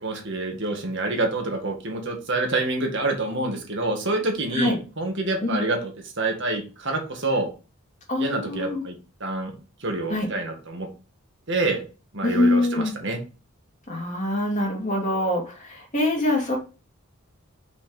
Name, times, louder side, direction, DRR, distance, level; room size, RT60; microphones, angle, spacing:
voice 1, 0.0-7.5 8.2-9.0 9.2-9.5 9.8-10.9 11.5-11.8 12.1-13.2, right 2 dB, 55° right, 2 dB, 1.8 m, -27 dB
voice 2, 8.1-8.8 10.1-10.3 12.2-12.9 13.9-16.6, left 1 dB, 35° left, -1 dB, 2.7 m, -24 dB
6.1 x 5.0 x 5.1 m, 0.33 s
head